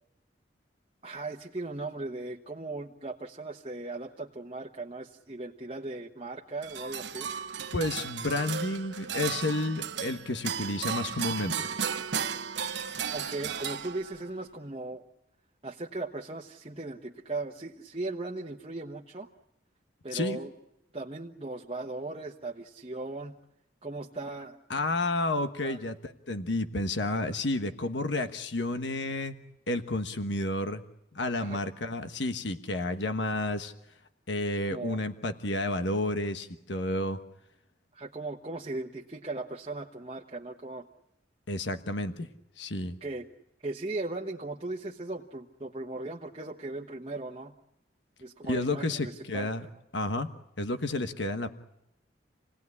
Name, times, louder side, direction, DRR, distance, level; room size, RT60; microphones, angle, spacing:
voice 1, 1.0-7.3 13.1-15.0 15.6-19.3 20.0-20.5 20.9-23.3 23.8-24.6 25.6-25.8 31.4-31.9 34.6-35.0 37.9-40.9 43.0-43.2 43.6-47.5 48.2-49.7, right 2 dB, 30° right, -1 dB, 1.2 m, -38 dB
sound 1, 6.6-14.3, right 7 dB, 75° right, 1.1 m, -35 dB
voice 2, 7.7-11.5 20.1-20.4 24.7-29.3 29.7-30.8 31.1-33.7 34.3-37.2 41.5-42.3 42.6-42.9 48.4-49.6 49.9-50.3 50.6-51.5, left 2 dB, 80° left, 8 dB, 1.3 m, -31 dB
28.0 x 18.5 x 9.7 m, 0.87 s
head